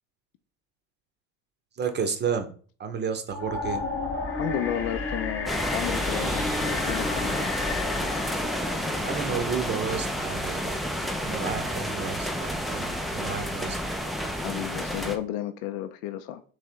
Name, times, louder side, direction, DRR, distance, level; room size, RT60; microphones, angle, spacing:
voice 1, 1.7-2.5 2.8-3.8 9.0-10.8 11.2-13.8, right 7 dB, 30° right, 7 dB, 0.8 m, -31 dB
sound 1, 3.3-10.4, left 4 dB, 35° left, 1.1 m, -33 dB
voice 2, 4.4-7.5 14.4-16.4, left 11 dB, 70° left, 9 dB, 0.5 m, -33 dB
sound 2, 5.5-15.2, equal, ahead, 0.4 m, -30 dB
3.5 x 3.2 x 4.5 m, 0.42 s
supercardioid pair, 105°, 36 cm